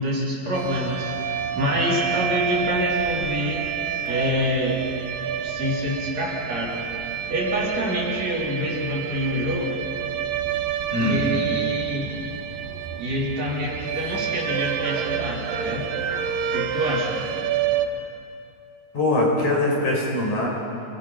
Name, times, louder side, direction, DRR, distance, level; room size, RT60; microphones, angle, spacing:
voice 1, 0.0-3.6 4.1-4.8 5.4-9.8 10.9-12.1 13.0-15.9 16.5-17.2, equal, 45° right, -4 dB, 4.7 m, -26 dB
sound 1, 0.5-17.9, right 8 dB, 70° right, 2.6 m, -28 dB
voice 2, 18.9-20.5, left 2 dB, 50° left, -3 dB, 6.5 m, -22 dB
29.0 x 21.5 x 5.7 m, 2.6 s
omnidirectional pair, 4.2 m